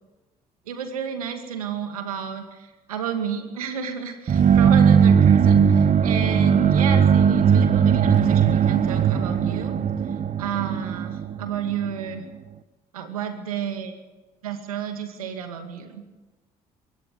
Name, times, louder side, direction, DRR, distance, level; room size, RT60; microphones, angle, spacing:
voice 1, 0.7-9.7 10.4-12.3 12.9-14.0 14.4-16.1, right 8 dB, 85° right, 6 dB, 2.3 m, -31 dB
sound 1, 4.3-12.0, right 7 dB, 45° right, 1.1 m, -18 dB
22.5 x 18.0 x 7.6 m, 1.2 s
hypercardioid pair, 50°, 18 cm